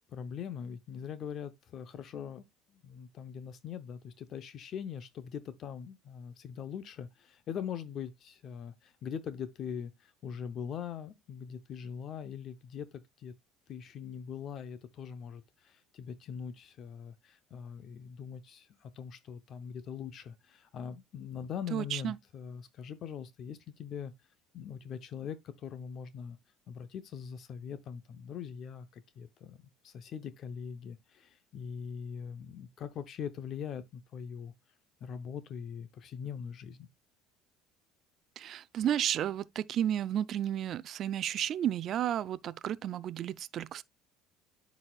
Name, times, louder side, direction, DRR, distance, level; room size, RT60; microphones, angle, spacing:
voice 1, 0.1-2.4 2.7-13.3 13.7-24.1 24.5-26.4 26.7-34.5 35.0-36.9, left 7 dB, 50° left, 0.6 m, -42 dB
voice 2, 21.7-22.2 38.4-43.8, right 10 dB, 50° right, 0.4 m, -32 dB
9.7 x 4.1 x 2.3 m
cardioid pair, 115°, 0 cm